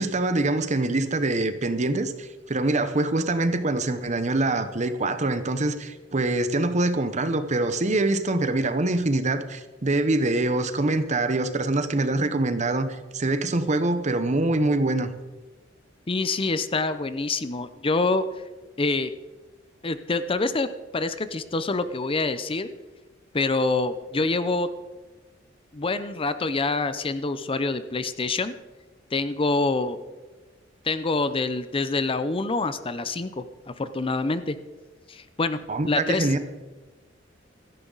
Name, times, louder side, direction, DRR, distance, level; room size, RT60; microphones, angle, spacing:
voice 1, 0.0-15.1 35.7-36.4, right 2 dB, 40° right, 11 dB, 0.9 m, -24 dB
voice 2, 16.1-18.2 18.8-19.1 19.8-20.7 20.9-22.7 23.3-24.7 25.7-28.5 29.1-30.0 30.8-34.6 35.1-35.6 35.9-36.3, left 3 dB, 30° left, 12 dB, 0.6 m, -26 dB
16.0 x 13.5 x 4.0 m, 1.2 s
head